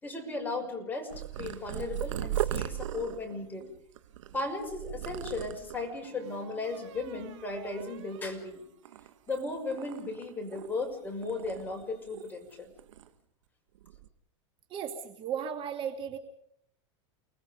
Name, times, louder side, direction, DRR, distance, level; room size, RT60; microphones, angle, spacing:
voice 1, 0.0-1.1 1.4-3.6 4.3-8.6 9.3-12.7, left 3 dB, 10° left, 2 dB, 6.0 m, -36 dB
Purr, 1.1-5.9 6.5-7.0 7.2-8.4 8.8-10.9 11.2-12.5 12.8-13.1 13.7-14.1, right 12 dB, 85° right, 1.6 m, -38 dB
sound 1, 3.0-3.8 5.7-9.3, right 10 dB, 65° right, 6.9 m, -53 dB
voice 2, 14.7-16.2, right 8 dB, 35° right, 5 dB, 2.4 m, -35 dB
29.5 x 20.5 x 5.2 m, 0.70 s
supercardioid pair, 135°, 16 cm